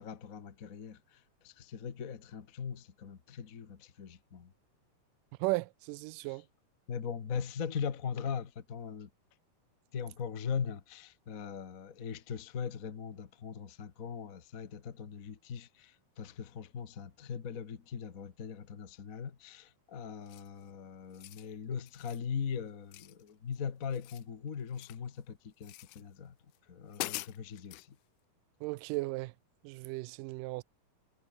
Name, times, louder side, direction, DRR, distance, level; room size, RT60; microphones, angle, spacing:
voice 1, 0.0-4.5 6.2-6.4 6.9-9.1 9.9-26.3 26.7-27.9, left 7 dB, 50° left, 1.0 m, -40 dB
voice 2, 5.4-6.4 28.6-29.3 29.6-30.6, right 23 dB, 85° right, 2.1 m, -35 dB
sound 1, 20.3-20.6 21.0-21.5 21.9-22.2 22.9-23.6 23.8-25.1 25.6-26.0 26.5-26.6 26.9-27.9, left 21 dB, 80° left, 1.8 m, -44 dB
omnidirectional pair, 3.8 m